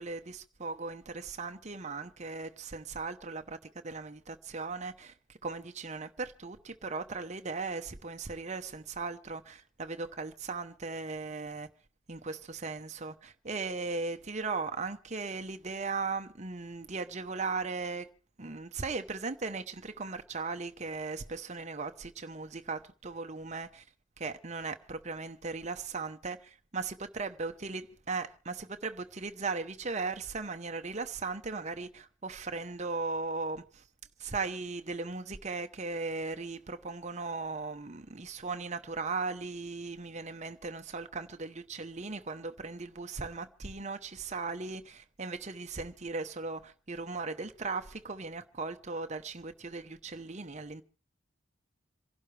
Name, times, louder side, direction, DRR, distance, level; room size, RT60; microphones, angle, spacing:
voice 1, 0.0-11.7 12.1-18.1 18.4-23.8 24.2-33.8 34.2-50.8, right 4 dB, 35° right, 0.9 m, -38 dB
27.5 x 12.0 x 3.3 m
head